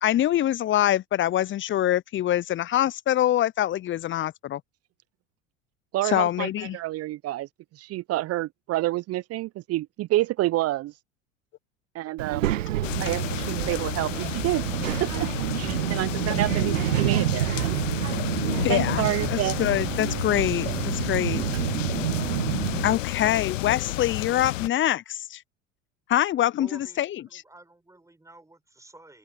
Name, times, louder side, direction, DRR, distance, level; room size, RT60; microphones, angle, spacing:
voice 1, 0.0-4.6 6.0-6.8 13.0-13.1 18.6-21.4 22.8-25.4 26.1-27.4, left 12 dB, 30° left, 0.7 m, -25 dB
voice 2, 5.9-7.5 7.8-10.9 11.9-12.5 13.0-14.6 15.0-15.3 15.5-17.7 18.7-19.6, right 16 dB, 40° right, 0.7 m, -28 dB
Child speech kid speaking, 12.2-22.9, right 13 dB, 80° right, 1.3 m, -28 dB
sound 1, 12.8-24.7, left 16 dB, 75° left, 0.6 m, -32 dB
voice 3, 26.6-29.2, right 2 dB, 10° right, 6.7 m, -50 dB
hypercardioid pair, 75°, 38 cm